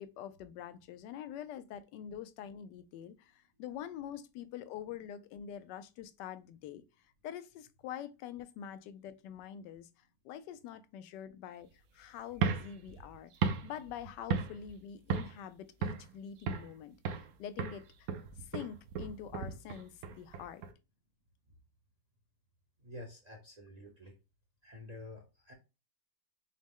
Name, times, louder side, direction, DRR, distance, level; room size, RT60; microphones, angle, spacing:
voice 1, 0.0-6.8 7.2-9.9 10.2-11.7 11.9-13.3 13.6-16.9 17.2-18.1 18.4-20.6, left 9 dB, 85° left, 1.2 m, -45 dB
sound 1, 12.3-14.8 15.1-15.4 15.8-16.7 17.0-17.3 17.6-20.7, right 6 dB, 65° right, 1.0 m, -36 dB
voice 2, 22.8-24.1 24.6-25.5, left 1 dB, 40° right, 0.5 m, -49 dB
6.2 x 2.1 x 3.6 m
omnidirectional pair, 1.8 m